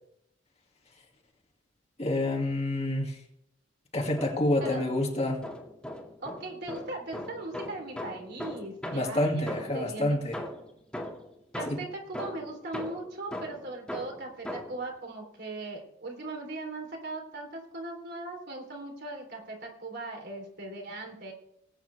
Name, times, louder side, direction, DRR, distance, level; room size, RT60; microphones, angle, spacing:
voice 1, 2.0-3.2 3.9-5.5 8.9-10.4 11.7-11.8, left 1 dB, 30° left, 1 dB, 2.2 m, -28 dB
sound 1, 4.2-5.1 5.4-9.9 10.3-14.9, left 1 dB, 5° left, 2.1 m, -40 dB
voice 2, 6.2-10.2 11.5-21.3, right 2 dB, 55° right, 2 dB, 3.5 m, -39 dB
19.5 x 9.2 x 3.4 m, 0.76 s
head